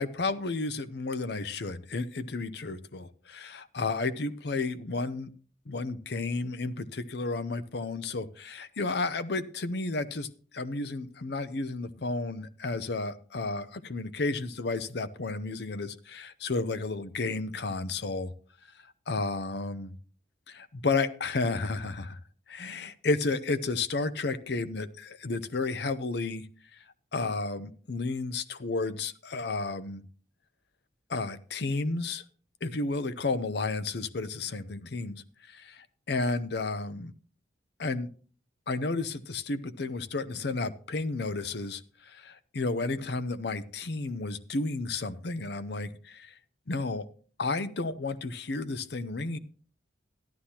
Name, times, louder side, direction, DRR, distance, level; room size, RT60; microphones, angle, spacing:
voice 1, 0.0-5.3 5.7-10.3 10.5-18.3 19.1-19.9 20.5-22.2 22.5-26.5 27.1-30.0 31.1-32.2 32.6-37.1 37.8-38.1 38.7-46.3 46.7-47.0 47.4-49.4, left 3 dB, 60° left, 14 dB, 0.6 m, -32 dB
13.5 x 11.5 x 2.9 m, 0.42 s
head